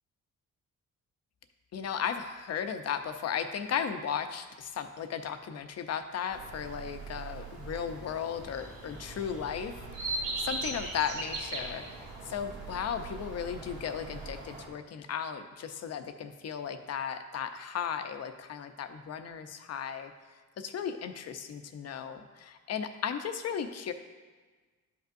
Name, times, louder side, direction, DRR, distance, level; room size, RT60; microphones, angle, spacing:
voice 1, 1.7-9.7 10.0-20.1 20.6-23.9, left 7 dB, 55° left, 8 dB, 0.7 m, -36 dB
sound 1, 6.3-14.7, right 3 dB, 85° right, 2.1 m, -40 dB
11.5 x 5.4 x 2.6 m, 1.4 s
cardioid pair, 90°, 30 cm